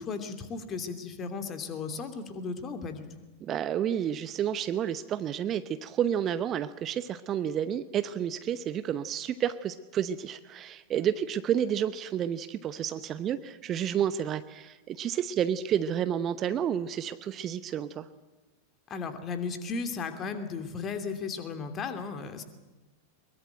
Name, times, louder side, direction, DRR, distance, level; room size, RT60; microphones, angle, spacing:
voice 1, 0.0-3.1 18.9-22.4, left 5 dB, 25° left, 8 dB, 2.9 m, -35 dB
voice 2, 3.4-18.1, right 9 dB, 30° right, 14 dB, 0.8 m, -30 dB
22.5 x 22.0 x 9.2 m, 1.1 s
figure-of-eight pair, 90°, 0 cm